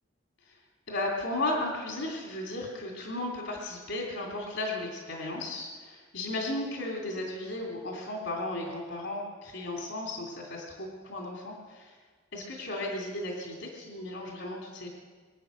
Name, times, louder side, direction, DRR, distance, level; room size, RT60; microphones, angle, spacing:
voice 1, 0.9-11.9 12.3-14.9, left 2 dB, 75° left, -1 dB, 2.9 m, -35 dB
24.0 x 9.0 x 6.5 m, 1.5 s
head